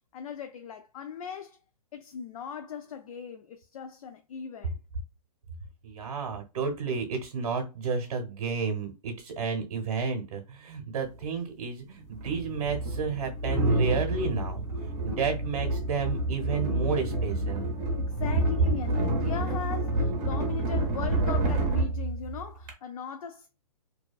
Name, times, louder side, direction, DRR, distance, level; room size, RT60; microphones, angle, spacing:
voice 1, 0.1-1.6 1.9-4.8 18.0-23.5, left 7 dB, 60° left, 0.4 m, -39 dB
voice 2, 5.8-14.7 15.0-17.7, right 5 dB, 65° right, 0.8 m, -31 dB
sound 1, 11.1-11.2 12.1-22.7, right 1 dB, 20° right, 0.6 m, -29 dB
2.7 x 2.2 x 2.3 m
hypercardioid pair, 160°, 20 cm